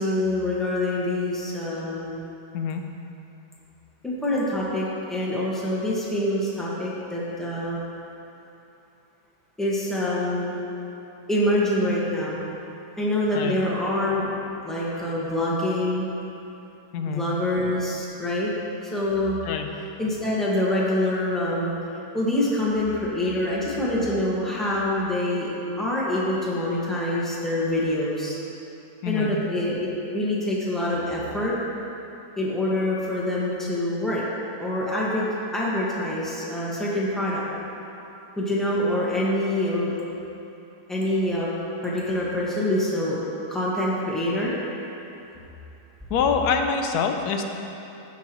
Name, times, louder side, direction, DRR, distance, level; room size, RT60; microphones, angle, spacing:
voice 1, 0.0-2.2 4.0-7.8 9.6-10.5 11.3-12.5 13.0-16.1 17.1-18.5 18.9-19.4 20.0-21.7 22.1-28.4 29.0-31.5 32.4-34.2 34.6-35.3 35.5-37.4 38.4-39.9 40.9-41.5 41.8-43.2 43.5-44.6, left 1 dB, ahead, -7 dB, 1.3 m, -25 dB
voice 2, 16.9-17.3 19.4-19.7 29.0-29.3 46.1-47.4, left 6 dB, 90° left, 4 dB, 1.2 m, -25 dB
14.5 x 5.9 x 3.0 m, 2.9 s
omnidirectional pair, 1.6 m